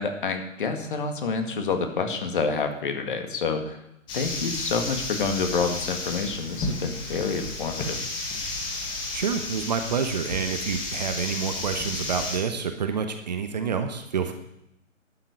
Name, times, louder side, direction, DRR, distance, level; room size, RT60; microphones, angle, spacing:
voice 1, 0.0-3.8 4.1-8.0, left 4 dB, 40° left, 6 dB, 2.0 m, -28 dB
sound 1, 4.1-12.4, left 2 dB, 10° left, 1.6 m, -32 dB
voice 2, 9.1-14.3, right 6 dB, 35° right, 7 dB, 1.0 m, -28 dB
12.0 x 7.5 x 8.4 m, 0.80 s
figure-of-eight pair, 145°, 39 cm